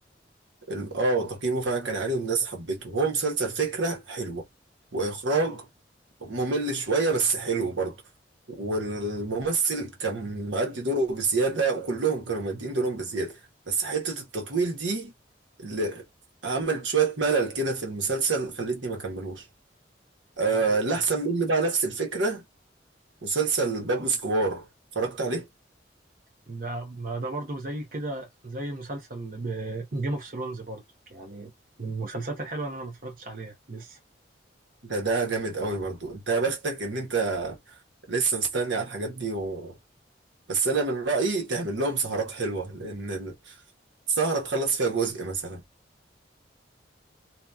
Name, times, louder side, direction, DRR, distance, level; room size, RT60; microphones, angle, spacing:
voice 1, 0.7-4.4 4.9-5.7 6.2-8.0 8.5-13.4 13.7-15.1 15.6-16.0 16.4-19.4 20.4-22.4 23.2-24.6 24.9-25.5 34.8-37.6 38.1-39.8 40.5-43.5 44.1-45.6, right 3 dB, 90° right, 1.1 m, -27 dB
voice 2, 20.5-20.8 26.5-30.8 31.1-31.5 31.8-34.0, right 2 dB, 50° right, 0.7 m, -34 dB
2.8 x 2.3 x 2.3 m
head